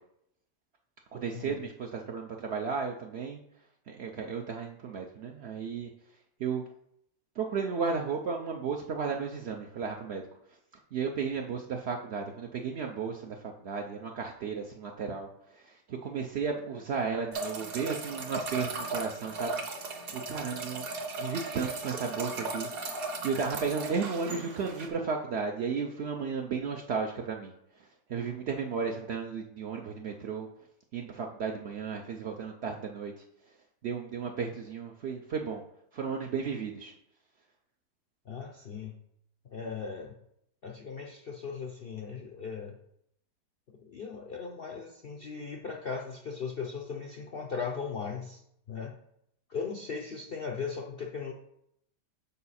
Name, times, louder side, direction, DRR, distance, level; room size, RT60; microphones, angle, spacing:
voice 1, 1.1-3.4 3.9-5.9 6.4-6.6 7.4-10.2 10.9-15.3 15.7-19.6 20.1-20.8 21.2-27.5 28.1-30.5 30.9-33.1 33.8-35.6 35.9-36.9, right 5 dB, 80° right, 2 dB, 0.5 m, -34 dB
sound 1, 17.3-24.9, right 3 dB, 60° right, 1.4 m, -37 dB
voice 2, 38.3-39.0 39.5-40.2 40.6-42.8 43.9-48.4 48.7-49.0 49.5-51.3, left 5 dB, 80° left, 1 dB, 0.5 m, -38 dB
7.0 x 4.7 x 4.2 m, 0.75 s
omnidirectional pair, 1.8 m